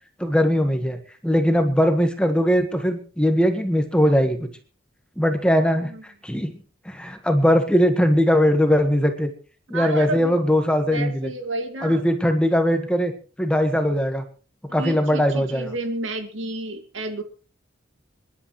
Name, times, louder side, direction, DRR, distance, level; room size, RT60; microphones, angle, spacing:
voice 1, 0.2-4.5 5.2-6.5 6.8-9.3 9.7-11.3 11.8-13.1 13.4-14.2 14.7-15.7, equal, 5° left, 6 dB, 1.5 m, -20 dB
voice 2, 9.7-10.4 10.9-12.0 14.7-17.2, right 1 dB, 85° right, 6 dB, 2.4 m, -31 dB
26.5 x 11.0 x 3.2 m, 0.37 s
head